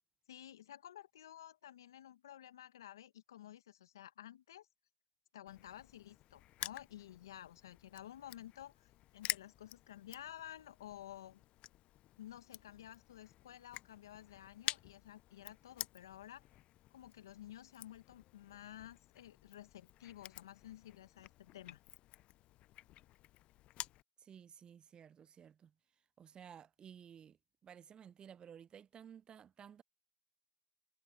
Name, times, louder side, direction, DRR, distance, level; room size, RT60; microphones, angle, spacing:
voice 1, 0.3-4.7 5.3-11.4 12.2-16.4 16.9-21.8, left 12 dB, 90° left, 1.0 m, -53 dB
Crushing, 5.5-24.0, left 15 dB, 65° left, 0.6 m, -50 dB
voice 2, 24.2-25.7 26.2-27.4 27.6-29.8, right 8 dB, 45° right, 0.4 m, -55 dB
hypercardioid pair, 50°, 2 cm